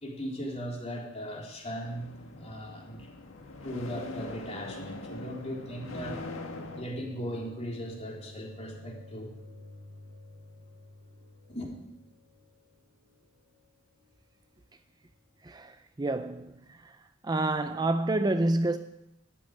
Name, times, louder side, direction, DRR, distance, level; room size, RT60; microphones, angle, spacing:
voice 1, 0.0-3.1 3.6-6.2 6.8-9.3 11.5-11.7, equal, 35° left, 3.5 m, -38 dB
sound 1, 1.8-6.8, left 2 dB, 90° left, 1.7 m, -42 dB
sound 2, 3.3-15.4, left 1 dB, 55° right, 1.6 m, -52 dB
voice 2, 15.4-17.0 17.2-18.8, right 2 dB, 20° right, 0.5 m, -29 dB
13.0 x 8.6 x 9.3 m
head